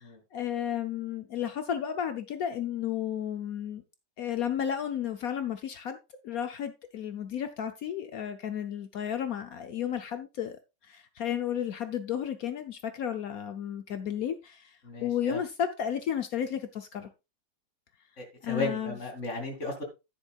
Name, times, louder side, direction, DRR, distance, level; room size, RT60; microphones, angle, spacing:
voice 1, 0.3-3.8 4.2-6.0 6.2-10.6 10.9-14.7 15.0-17.1 18.4-19.0, left 9 dB, 65° left, 1.1 m, -33 dB
voice 2, 14.8-15.4 18.2-19.8, left 2 dB, 45° left, 2.9 m, -35 dB
10.0 x 10.0 x 2.4 m
omnidirectional pair, 1.8 m